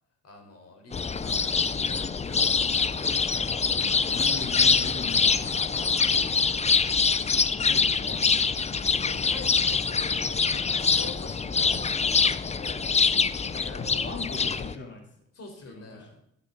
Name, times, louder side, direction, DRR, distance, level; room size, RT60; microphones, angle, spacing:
voice 1, 0.2-3.6 4.0-6.6 8.9-13.0 13.4-14.1 14.4-14.5 15.3-16.2, left 3 dB, 55° left, 4 dB, 4.4 m, -47 dB
sound 1, 0.9-14.7, left 5 dB, 20° left, 0.6 m, -25 dB
voice 2, 4.1-5.5 7.6-8.2 11.6-11.7 13.7-15.0 15.7-16.1, left 3 dB, 40° left, 1 dB, 3.1 m, -39 dB
12.5 x 12.0 x 4.0 m, 0.70 s
cardioid pair, 90°, 30 cm